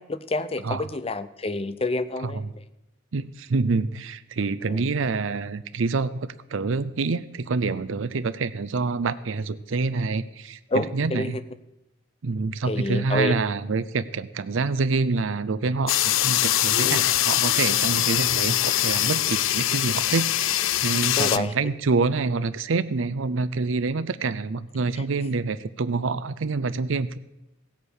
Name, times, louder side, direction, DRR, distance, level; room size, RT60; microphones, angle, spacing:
voice 1, 0.0-2.4 4.7-4.8 10.7-11.4 12.7-13.4 16.8-17.0 21.2-21.5, left 2 dB, 30° left, 13 dB, 0.6 m, -28 dB
voice 2, 2.2-2.5 3.1-11.4 12.2-27.2, right 4 dB, 75° right, 13 dB, 0.5 m, -27 dB
sound 1, 15.9-21.4, left 13 dB, 80° left, 0.5 m, -23 dB
16.0 x 8.2 x 6.4 m, 0.93 s
head